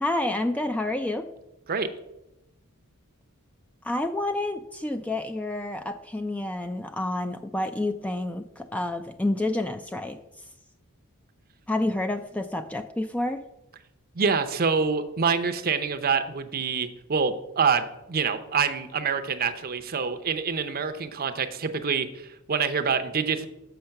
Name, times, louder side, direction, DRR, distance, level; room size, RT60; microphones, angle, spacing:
voice 1, 0.0-1.3 3.8-10.2 11.7-13.4, left 1 dB, 5° left, 7 dB, 0.3 m, -29 dB
voice 2, 14.2-22.1 22.5-23.5, right 5 dB, 45° right, 8 dB, 0.6 m, -26 dB
6.5 x 5.8 x 6.5 m, 0.93 s
head